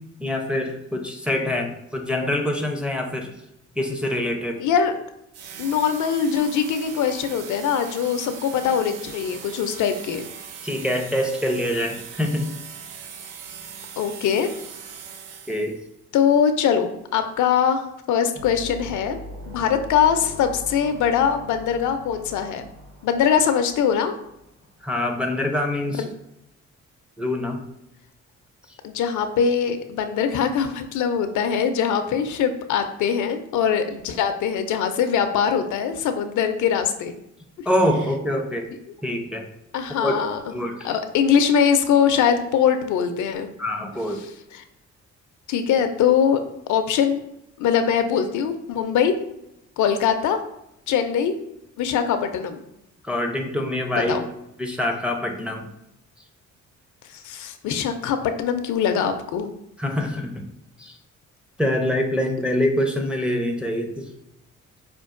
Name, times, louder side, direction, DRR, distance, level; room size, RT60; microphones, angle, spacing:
voice 1, 0.2-3.3 3.8-4.6 10.6-12.5 15.5-15.8 24.8-26.0 27.2-27.6 37.7-38.7 39.0-39.4 40.0-40.2 40.5-40.8 43.6-44.2 53.0-54.2 54.6-55.7 59.8-60.4 60.8-61.0 61.6-64.1, left 1 dB, 5° right, 3 dB, 0.4 m, -25 dB
voice 2, 4.6-4.9 5.6-10.3 14.0-14.5 16.1-17.8 18.1-19.2 19.5-22.7 23.0-24.1 26.0-26.1 28.8-37.1 38.9-39.0 39.7-40.4 40.8-43.5 44.5-44.6 45.5-46.4 46.7-47.2 47.6-49.1 49.8-50.4 50.9-51.3 51.8-52.6 53.9-54.3 57.1-59.5, left 7 dB, 75° left, 8 dB, 0.4 m, -22 dB
sound 1, 5.3-15.9, right 7 dB, 90° right, 0.5 m, -40 dB
sound 2, 18.3-24.8, left 1 dB, 50° right, 0.8 m, -41 dB
5.1 x 2.3 x 2.4 m, 0.83 s
cardioid pair, 90°, 30 cm